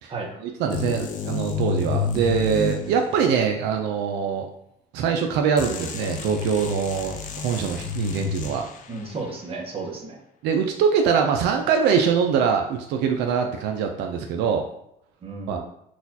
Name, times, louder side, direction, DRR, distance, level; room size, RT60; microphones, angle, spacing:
voice 1, 0.4-4.5 4.9-8.7 10.4-14.7 15.5-15.6, right 6 dB, 85° right, 4 dB, 0.4 m, -23 dB
sound 1, 0.7-3.6 5.6-9.0, left 6 dB, 50° left, 0.4 m, -30 dB
voice 2, 8.9-10.2 15.2-15.6, right 3 dB, 35° right, 0 dB, 0.9 m, -33 dB
4.0 x 2.4 x 2.7 m, 0.75 s
cardioid pair, 110°, 17 cm